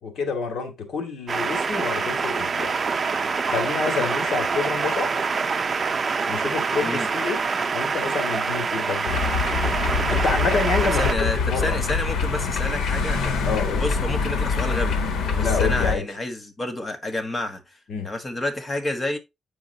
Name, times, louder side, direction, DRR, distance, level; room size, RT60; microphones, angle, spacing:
voice 1, 0.0-2.7 3.5-5.2 6.3-7.4 7.7-9.2 10.1-11.1 11.5-11.8 13.4-13.8 15.4-16.0 17.9-18.1, left 4 dB, 70° left, 2.3 m, -28 dB
sound 1, 1.3-11.1, right 5 dB, 40° right, 0.6 m, -25 dB
voice 2, 6.8-7.1 11.0-13.4 13.8-15.0 15.3-17.8 18.0-19.2, left 1 dB, 25° left, 1.4 m, -29 dB
sound 2, 9.1-16.0, left 5 dB, 90° left, 1.2 m, -24 dB
9.0 x 4.8 x 2.8 m
cardioid pair, 110°, 0 cm